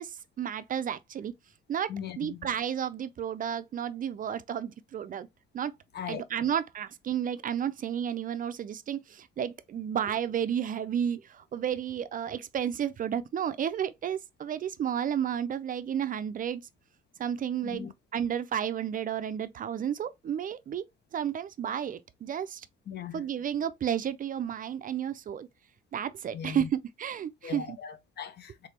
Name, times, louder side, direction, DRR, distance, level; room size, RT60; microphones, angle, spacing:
voice 1, 0.0-1.3 1.7-5.3 5.5-5.7 6.1-16.6 17.2-17.8 18.1-20.8 21.1-22.7 23.1-25.5 25.9-27.8, right 9 dB, 45° right, 0.4 m, -32 dB
voice 2, 1.9-2.5 5.9-6.2 17.6-17.9 22.9-23.2 26.3-26.7 27.4-28.7, left 7 dB, 55° left, 0.7 m, -39 dB
3.6 x 3.3 x 2.8 m
cardioid pair, 90°, 20 cm